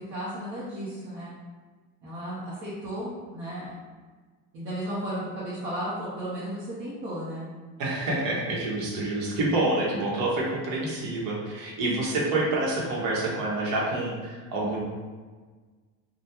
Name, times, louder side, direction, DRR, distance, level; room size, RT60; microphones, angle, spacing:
voice 1, 0.0-1.3 2.0-3.7 4.5-7.5, equal, 40° right, -10 dB, 0.9 m, -34 dB
voice 2, 7.8-14.8, right 2 dB, 75° right, -4 dB, 1.0 m, -27 dB
3.4 x 2.3 x 2.8 m, 1.4 s
cardioid pair, 155°, 35 cm